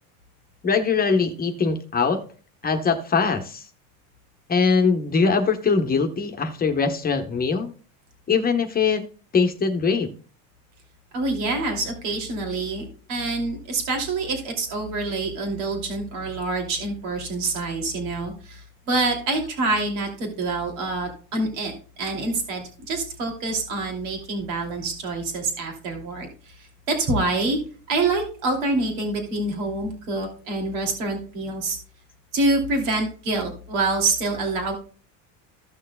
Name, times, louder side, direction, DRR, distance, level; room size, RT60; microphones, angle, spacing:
voice 1, 0.6-2.2 2.6-3.6 4.5-7.7 8.3-9.0 9.3-10.1, left 5 dB, 20° left, 5 dB, 1.0 m, -22 dB
voice 2, 11.1-27.6 27.9-31.8 32.3-34.7, right 2 dB, 80° right, 2 dB, 2.8 m, -26 dB
15.5 x 6.4 x 2.3 m, 0.39 s
supercardioid pair, 130°, 40 cm